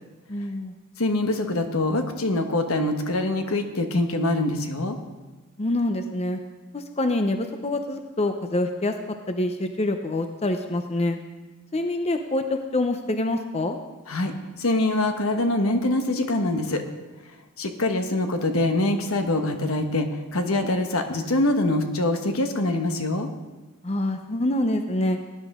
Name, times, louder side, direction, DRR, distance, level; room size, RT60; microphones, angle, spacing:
voice 1, 0.3-0.7 5.6-6.4 6.7-8.9 9.3-11.2 11.7-13.8 23.8-25.2, left 1 dB, 30° left, 6 dB, 0.7 m, -26 dB
voice 2, 1.0-5.0 14.1-16.8 17.6-23.3, left 2 dB, 75° left, 5 dB, 1.3 m, -24 dB
17.5 x 10.5 x 3.7 m, 1.2 s
head